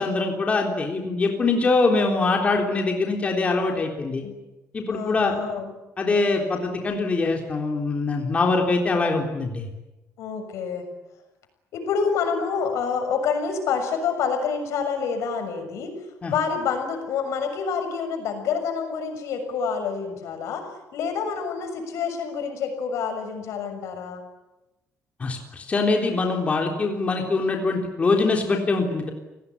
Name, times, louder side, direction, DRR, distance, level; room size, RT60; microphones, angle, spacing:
voice 1, 0.0-4.2 4.7-5.4 6.0-9.7 16.2-16.3 25.2-29.1, left 3 dB, 25° left, 2 dB, 3.6 m, -23 dB
voice 2, 4.9-5.7 10.2-10.9 11.7-16.0 16.2-24.2, left 6 dB, 80° left, 6 dB, 6.6 m, -27 dB
30.0 x 18.5 x 9.8 m, 1.0 s
cardioid pair, 155°, 5 cm